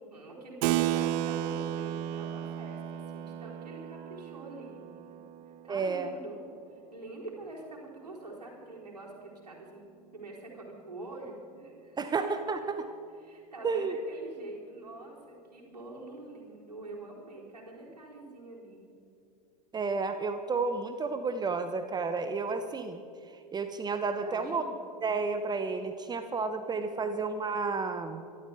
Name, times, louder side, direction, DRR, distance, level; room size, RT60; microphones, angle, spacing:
voice 1, 0.0-5.2 5.6-6.4 6.7-9.9 10.1-12.0 12.5-12.6 13.2-18.9 24.2-24.7 26.8-27.1, right 2 dB, 85° right, -3 dB, 4.1 m, -46 dB
Keyboard (musical), 0.6-6.6, right 12 dB, 50° right, 0.6 m, -34 dB
voice 2, 5.7-6.1 12.0-12.9 13.6-14.0 19.7-24.6 25.0-28.2, right 4 dB, 20° right, 9 dB, 0.9 m, -31 dB
25.0 x 13.0 x 3.5 m, 2.6 s
figure-of-eight pair, 80°, 20 cm